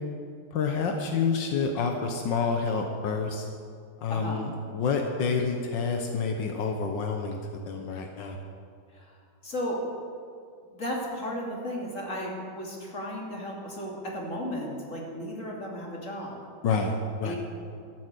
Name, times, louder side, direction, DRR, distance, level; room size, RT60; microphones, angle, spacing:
voice 1, 0.5-3.5 4.0-7.4 7.7-8.4 16.6-16.9 17.2-17.4, left 5 dB, 85° left, 3 dB, 1.8 m, -28 dB
voice 2, 9.4-9.8 10.7-16.4 17.2-17.4, equal, 45° left, -2 dB, 3.3 m, -34 dB
13.5 x 12.0 x 8.4 m, 2.3 s
omnidirectional pair, 1.9 m